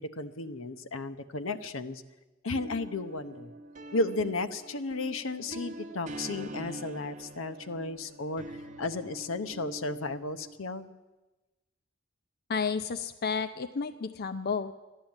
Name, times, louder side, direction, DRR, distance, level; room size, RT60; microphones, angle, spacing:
voice 1, 0.0-2.0 2.4-3.5 3.9-10.9, left 2 dB, 80° left, 9 dB, 0.9 m, -34 dB
sound 1, 2.5-10.6, right 1 dB, 40° right, 0.8 m, -44 dB
voice 2, 12.5-14.7, left 5 dB, 50° left, 9 dB, 0.5 m, -31 dB
13.5 x 11.0 x 8.9 m, 1.1 s
head